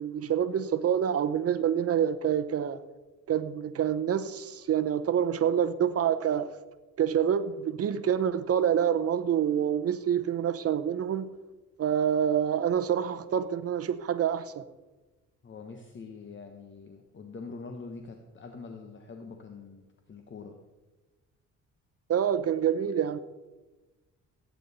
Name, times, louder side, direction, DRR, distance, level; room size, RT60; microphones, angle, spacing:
voice 1, 0.0-2.8 3.3-6.5 7.0-11.3 11.8-14.6 22.1-23.2, right 9 dB, 50° right, 0.8 m, -27 dB
voice 2, 15.4-20.6, left 4 dB, 40° left, 1.2 m, -44 dB
16.0 x 9.3 x 4.2 m
cardioid pair, 90°, 30 cm